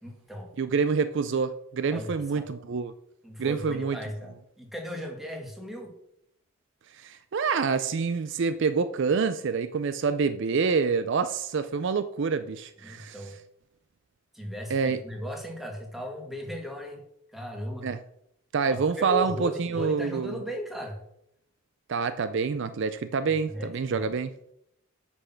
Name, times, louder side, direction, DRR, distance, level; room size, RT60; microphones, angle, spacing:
voice 1, 0.0-0.5 1.9-2.5 3.2-5.9 12.8-13.4 14.3-17.0 17.3-17.9 19.0-21.0 23.2-24.1, equal, ahead, 1.7 m, -37 dB
voice 2, 0.6-2.9 3.4-4.0 6.9-13.2 14.7-15.0 17.8-18.0 18.5-20.4 21.9-24.3, right 5 dB, 55° right, 0.4 m, -27 dB
8.2 x 6.1 x 5.7 m
head